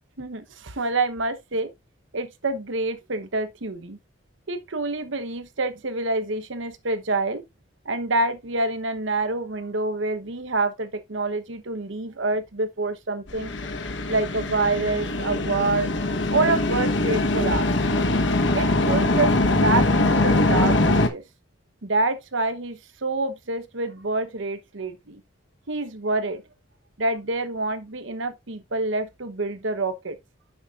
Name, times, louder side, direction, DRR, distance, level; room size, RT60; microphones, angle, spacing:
voice 1, 0.2-1.7 2.1-4.0 4.5-7.4 7.8-13.5 14.1-15.9 16.3-17.7 18.5-21.2 21.8-25.2 25.7-26.4 27.0-30.2, right 3 dB, 75° right, 1.0 m, -27 dB
sound 1, 13.3-21.1, left 2 dB, 65° left, 1.2 m, -22 dB
9.3 x 7.0 x 2.5 m
head